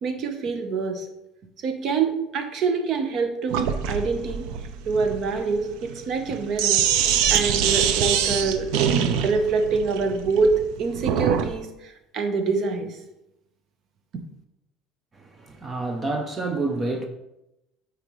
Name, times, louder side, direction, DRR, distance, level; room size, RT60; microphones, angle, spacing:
voice 1, 0.0-1.1 1.6-4.5 4.9-6.8 7.3-8.7 9.2-13.0 14.1-14.2, right 4 dB, 40° right, 0.9 m, -25 dB
Sink (filling or washing), 3.5-11.5, right 8 dB, 70° right, 0.6 m, -24 dB
voice 2, 15.1-17.1, right 2 dB, 20° right, 0.6 m, -28 dB
9.0 x 4.6 x 3.1 m
cardioid pair, 150°, 0 cm